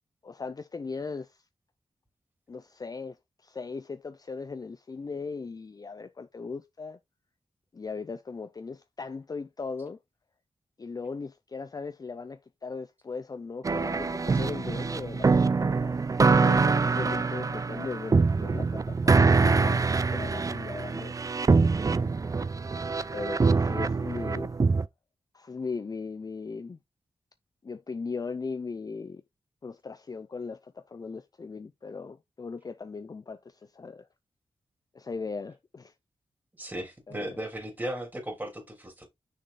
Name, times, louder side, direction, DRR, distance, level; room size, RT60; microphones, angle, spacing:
voice 1, 0.2-1.4 2.5-3.2 3.4-7.0 7.7-10.0 10.8-16.0 16.3-19.8 20.1-21.1 23.1-24.5 25.3-26.8 27.6-29.2 29.6-34.1 34.9-35.9 37.1-37.4, left 4 dB, 40° left, 0.5 m, -38 dB
sound 1, 13.6-24.9, right 4 dB, 35° right, 0.4 m, -24 dB
voice 2, 36.6-39.1, right 1 dB, 20° right, 3.0 m, -36 dB
6.3 x 3.9 x 4.1 m
cardioid pair, 65°, 10 cm